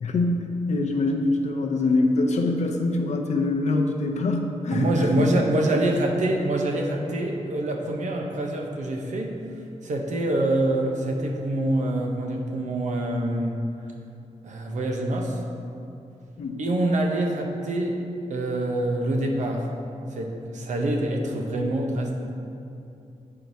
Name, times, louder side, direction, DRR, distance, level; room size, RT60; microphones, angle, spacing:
voice 1, 0.0-4.9 5.2-5.4 16.4-16.6, left 2 dB, 65° left, 2 dB, 0.6 m, -24 dB
voice 2, 4.7-9.4 9.8-13.6 14.4-15.4 16.6-18.0 18.3-19.7 20.1-22.2, right 1 dB, 75° right, 1 dB, 0.8 m, -25 dB
8.7 x 4.5 x 2.7 m, 2.7 s
wide cardioid pair, 125°, 12 cm